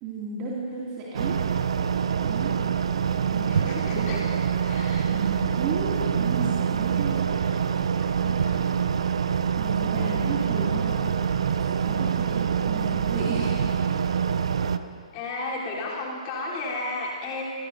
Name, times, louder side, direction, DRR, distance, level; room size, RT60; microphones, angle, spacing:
voice 1, 0.0-1.4 2.2-2.5 3.1-3.6 3.9-4.1 5.1-7.7 9.6-11.0 11.4-13.8, right 4 dB, 30° right, -5 dB, 2.6 m, -33 dB
sound 1, 1.1-14.8, right 7 dB, 65° right, 0.7 m, -25 dB
voice 2, 3.5-4.2 4.6-5.1 7.9-8.6 15.1-17.4, left 2 dB, 35° left, -5 dB, 3.8 m, -33 dB
26.0 x 18.5 x 2.8 m, 2.3 s
figure-of-eight pair, 125°, 3 cm